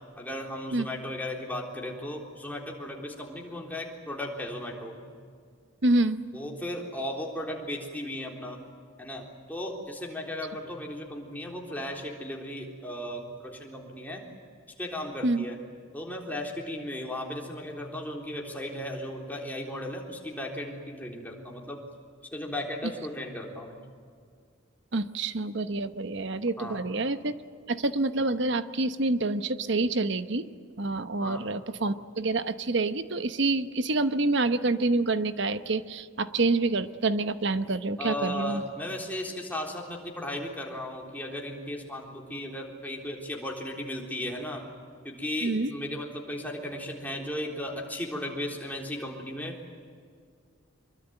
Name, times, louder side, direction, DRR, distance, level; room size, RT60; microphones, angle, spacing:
voice 1, 0.2-5.0 6.3-8.6 9.0-9.2 9.5-14.2 14.8-15.6 15.9-21.8 22.3-23.8 26.6-26.8 31.2-31.4 38.0-44.7 45.0-49.5, left 1 dB, 10° left, -1 dB, 3.8 m, -36 dB
voice 2, 5.8-6.2 15.2-15.4 24.9-30.5 30.8-38.6 45.4-45.7, right 2 dB, 60° right, 11 dB, 1.1 m, -27 dB
25.0 x 23.0 x 9.1 m, 2.1 s
head